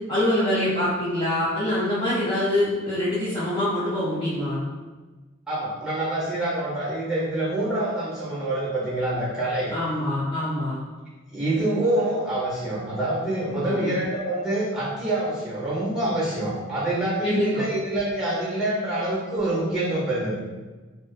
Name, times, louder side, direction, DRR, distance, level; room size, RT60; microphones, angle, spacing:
voice 1, 0.1-4.6 9.7-10.8 13.6-13.9 17.2-17.6, left 1 dB, 25° left, -9 dB, 0.4 m, -24 dB
voice 2, 5.5-9.7 11.3-20.3, right 1 dB, 5° right, -9 dB, 0.7 m, -26 dB
2.4 x 2.3 x 2.3 m, 1.3 s
head